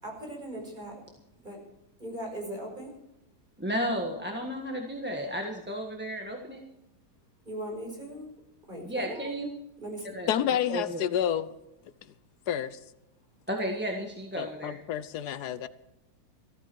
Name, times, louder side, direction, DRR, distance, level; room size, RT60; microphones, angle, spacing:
voice 1, 0.0-1.1 1.4-1.6 2.0-2.9 7.5-8.3 8.6-9.3 9.8-10.2, right 1 dB, 30° right, 0 dB, 5.3 m, -39 dB
voice 2, 3.6-6.6 8.8-9.5 10.1-10.3 10.7-11.0 13.5-14.8, equal, 5° right, 1 dB, 1.3 m, -33 dB
voice 3, 10.3-11.5 12.5-12.8 14.4-15.7, left 10 dB, 80° left, 15 dB, 1.3 m, -29 dB
15.0 x 14.0 x 4.6 m, 0.89 s
omnidirectional pair, 1.7 m